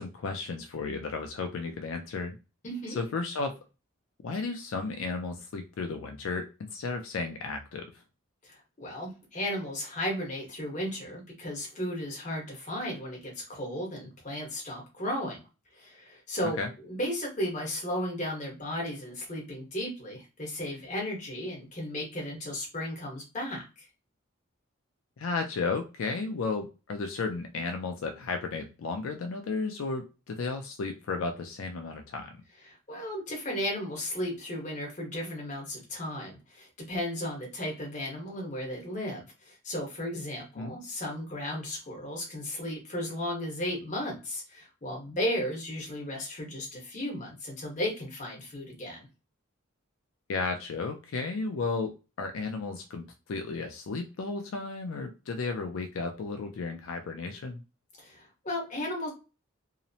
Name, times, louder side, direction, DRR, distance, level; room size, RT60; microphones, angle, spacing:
voice 1, 0.0-2.4 3.0-3.6 4.2-8.0 16.6-16.7 25.2-32.4 40.6-40.8 50.3-57.6, left 4 dB, 75° left, 5 dB, 0.4 m, -34 dB
voice 2, 2.6-3.0 8.5-15.4 15.7-23.9 32.6-49.1 58.0-59.1, left 1 dB, 35° left, -1 dB, 1.0 m, -35 dB
2.8 x 2.0 x 2.6 m, 0.29 s
head